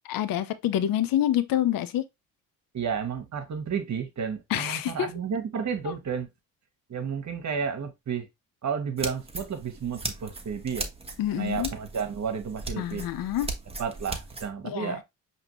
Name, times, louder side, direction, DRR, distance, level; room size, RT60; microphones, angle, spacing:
voice 1, 0.0-2.0 4.5-5.1 5.8-5.9 11.2-11.7 12.8-13.5 14.6-15.0, left 12 dB, 60° left, 0.7 m, -27 dB
voice 2, 2.7-6.3 6.9-8.3 8.6-10.9 11.3-13.1 13.8-15.0, right 6 dB, 45° right, 1.2 m, -32 dB
sound 1, 9.0-14.5, right 3 dB, 15° right, 1.1 m, -38 dB
5.0 x 3.0 x 3.0 m
supercardioid pair, 55°, 39 cm